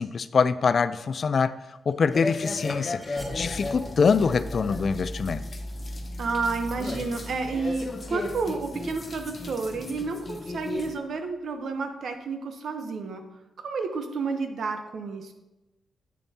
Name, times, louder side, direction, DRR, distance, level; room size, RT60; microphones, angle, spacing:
voice 1, 0.0-1.5 1.9-5.5, left 5 dB, 50° left, 0.3 m, -24 dB
sound 1, 1.7-10.6, equal, ahead, 2.4 m, -40 dB
sound 2, 2.1-11.0, left 3 dB, 35° left, 0.8 m, -36 dB
voice 2, 6.2-13.2 13.6-15.3, right 4 dB, 70° right, 0.8 m, -31 dB
8.7 x 6.9 x 2.8 m
cardioid pair, 90°, 0 cm